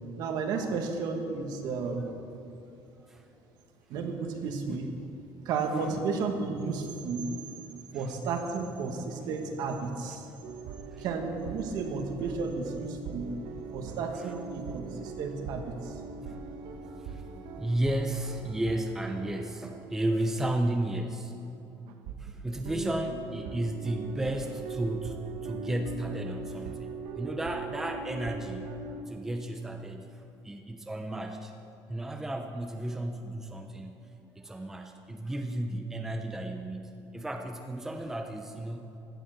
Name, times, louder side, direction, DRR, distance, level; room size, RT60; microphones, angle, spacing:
voice 1, 0.2-2.0 3.9-4.9 5.5-7.3 7.9-10.3 11.0-13.3 13.7-16.0, right 4 dB, 55° right, 4 dB, 1.8 m, -33 dB
sound 1, 10.4-20.6 20.9-21.0 21.9-29.0, right 5 dB, 90° right, 1.3 m, -41 dB
voice 2, 16.8-21.4 22.2-28.8 29.1-31.5 31.9-34.1 34.3-39.0, right 1 dB, 5° right, 4 dB, 0.6 m, -33 dB
16.5 x 11.5 x 6.7 m, 2.8 s
cardioid pair, 175°, 8 cm